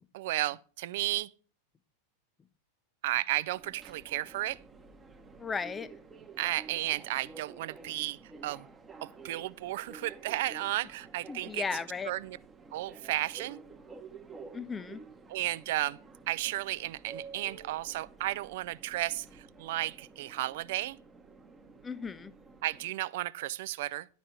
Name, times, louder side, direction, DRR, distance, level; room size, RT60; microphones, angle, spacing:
voice 1, 0.1-1.3 3.0-4.6 6.4-8.7 9.0-12.4 12.7-13.6 15.3-16.0 16.3-21.0 22.6-24.1, right 16 dB, 50° right, 0.4 m, -33 dB
Subway metro underground, 3.5-22.9, right 4 dB, 15° right, 0.9 m, -51 dB
voice 2, 5.4-5.9 11.3-12.1 14.5-15.0 21.8-22.3, left 5 dB, 15° left, 0.6 m, -35 dB
11.0 x 5.2 x 5.6 m
figure-of-eight pair, 90°, 0 cm